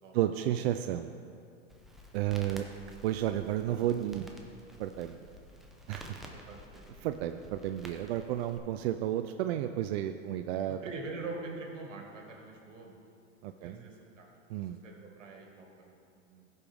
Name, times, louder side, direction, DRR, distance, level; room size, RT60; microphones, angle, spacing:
voice 1, 0.1-1.1 2.1-2.6 3.0-4.3 4.8-5.2 5.9-6.1 7.0-10.8 13.4-13.8 14.5-14.8, right 12 dB, 55° right, 8 dB, 0.5 m, -32 dB
Crackle, 1.7-8.6, equal, ahead, 0.8 m, -51 dB
voice 2, 6.3-6.8 10.8-13.0 13.6-14.3 14.5-16.4, right 3 dB, 85° right, 0 dB, 2.0 m, -44 dB
15.5 x 5.4 x 3.5 m, 2.5 s
hypercardioid pair, 115°, 37 cm